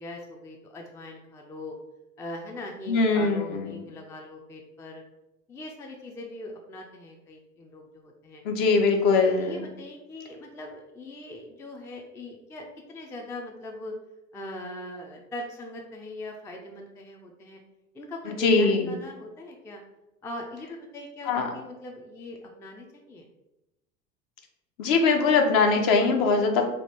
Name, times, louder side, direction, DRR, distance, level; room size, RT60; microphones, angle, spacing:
voice 1, 0.0-1.7 2.2-5.0 5.5-8.4 9.2-13.9 14.3-17.6 17.9-19.8 20.2-23.3, left 1 dB, 10° left, 1 dB, 0.3 m, -41 dB
voice 2, 2.9-3.8 8.4-9.6 18.3-19.0 21.3-21.5 24.8-26.6, left 4 dB, 55° left, 3 dB, 0.8 m, -22 dB
3.4 x 2.3 x 4.3 m, 0.96 s
figure-of-eight pair, 70°, 39 cm